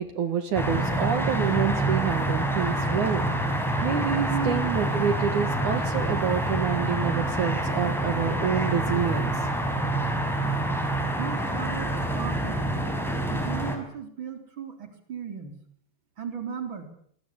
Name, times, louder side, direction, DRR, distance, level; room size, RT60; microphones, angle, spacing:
voice 1, 0.0-3.3 3.8-9.5, right 8 dB, 60° right, 8 dB, 3.1 m, -28 dB
sound 1, 0.5-13.8, right 1 dB, ahead, 5.3 m, -27 dB
voice 2, 4.1-4.5 4.9-5.1 11.2-11.9 12.1-12.8 13.2-15.5 16.2-16.9, right 7 dB, 35° right, 6 dB, 4.4 m, -35 dB
26.5 x 20.0 x 8.7 m, 0.64 s
omnidirectional pair, 4.1 m